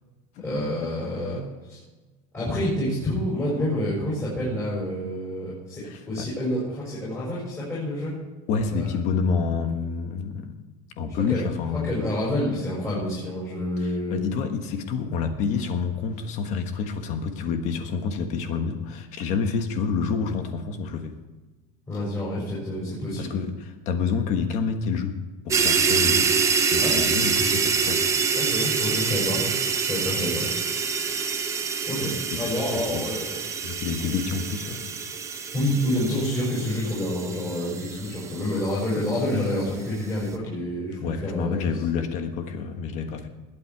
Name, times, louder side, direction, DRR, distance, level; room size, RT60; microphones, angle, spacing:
voice 1, 0.4-1.4 1.7-1.8 2.3-8.2 8.7-8.8 11.3-11.4 11.8-14.2 21.9-23.4 26.8-27.0 28.3-29.4 29.8-30.5 31.9-33.3 35.5-41.7 41.9-42.1, left 1 dB, 15° left, -9 dB, 6.0 m, -28 dB
voice 2, 5.8-6.3 8.5-10.6 11.0-11.9 13.8-21.1 23.2-25.1 25.4-26.3 26.7-28.0 32.3-33.0 33.6-34.9 41.0-43.3, left 5 dB, 45° left, 7 dB, 1.4 m, -28 dB
sound 1, 25.5-39.1, right 5 dB, 15° right, 1.0 m, -26 dB
20.5 x 9.0 x 4.7 m, 1.2 s
cardioid pair, 165°, 18 cm